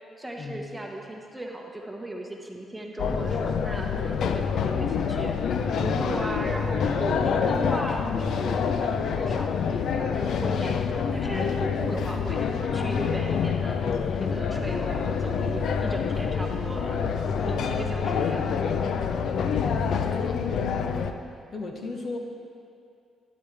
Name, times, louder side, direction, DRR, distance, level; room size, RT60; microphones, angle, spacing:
voice 1, 0.2-13.8 14.2-17.1 17.4-18.8, right 1 dB, 10° right, 0 dB, 1.2 m, -36 dB
sound 1, 3.0-21.1, left 6 dB, 65° left, 0.5 m, -27 dB
voice 2, 17.4-17.7 19.5-21.0 21.5-22.2, left 3 dB, 50° left, 2 dB, 1.1 m, -38 dB
12.0 x 9.7 x 3.4 m, 2.4 s
cardioid pair, 90°, 0 cm